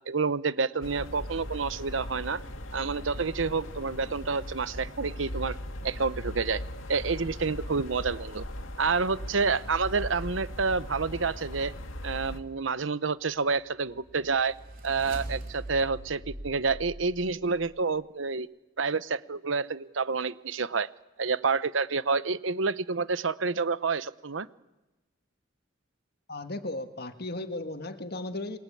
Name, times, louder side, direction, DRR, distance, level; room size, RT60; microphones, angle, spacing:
voice 1, 0.1-2.4 2.7-5.6 5.8-6.6 6.9-8.4 8.8-11.7 12.0-14.6 14.8-18.5 18.8-20.9 21.2-24.5, right 4 dB, 80° right, 15 dB, 0.9 m, -28 dB
sound 1, 0.8-12.4, left 1 dB, 90° left, 2.3 m, -39 dB
sound 2, 13.6-17.8, right 1 dB, 45° right, 3.9 m, -42 dB
voice 2, 26.3-28.6, left 2 dB, 55° left, 8 dB, 1.7 m, -35 dB
28.0 x 22.0 x 8.6 m, 1.1 s
head